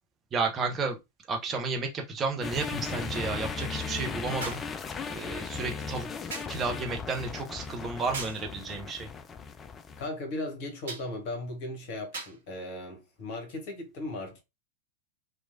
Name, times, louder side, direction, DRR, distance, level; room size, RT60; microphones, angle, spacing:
voice 1, 0.3-1.0 1.3-4.6 5.1-6.1 6.5-9.1, right 4 dB, 25° right, 0.6 m, -32 dB
sound 1, 0.6-0.7 4.4-4.8 6.3-6.6 8.1-8.5 10.9-11.1 12.1-12.4 13.5-13.6, right 3 dB, 60° right, 1.0 m, -39 dB
sound 2, 2.4-10.1, left 5 dB, 20° left, 0.3 m, -37 dB
voice 2, 10.0-14.4, left 2 dB, 45° left, 1.1 m, -37 dB
3.0 x 2.2 x 2.6 m
figure-of-eight pair, 90°, 0 cm